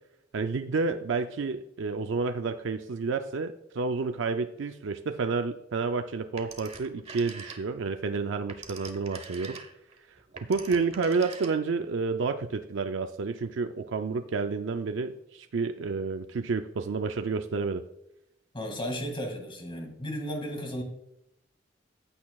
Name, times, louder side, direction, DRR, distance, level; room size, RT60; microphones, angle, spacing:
voice 1, 0.3-9.6 10.3-17.8, right 4 dB, 70° right, 7 dB, 0.5 m, -30 dB
Telephone, 6.4-7.9 8.3-11.9, right 4 dB, 35° right, 1.0 m, -44 dB
voice 2, 18.5-20.8, equal, 25° left, 2 dB, 2.1 m, -34 dB
14.5 x 8.3 x 2.4 m, 0.83 s
head